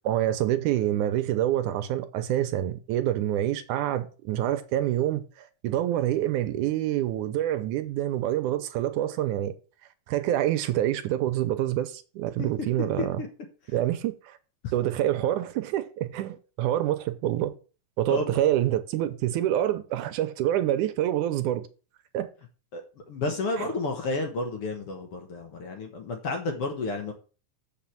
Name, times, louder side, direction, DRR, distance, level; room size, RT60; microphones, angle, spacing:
voice 1, 0.1-9.5 10.1-13.2 13.7-14.4 14.7-17.5 18.0-21.7 22.1-22.3 23.6-23.7, right 12 dB, 80° right, 2.1 m, -27 dB
voice 2, 18.1-18.4 22.7-27.1, left 2 dB, 55° left, 1.8 m, -31 dB
7.4 x 5.1 x 7.2 m
omnidirectional pair, 3.7 m